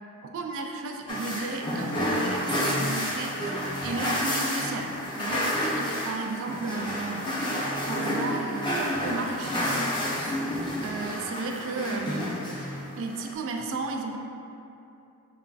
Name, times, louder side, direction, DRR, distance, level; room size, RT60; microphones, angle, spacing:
voice 1, 0.2-4.9 5.2-7.4 7.8-12.4 13.0-14.2, right 3 dB, 60° right, 3 dB, 0.3 m, -34 dB
sound 1, 1.1-13.3, equal, 20° left, 0.4 m, -30 dB
5.0 x 2.5 x 2.3 m, 2.7 s
head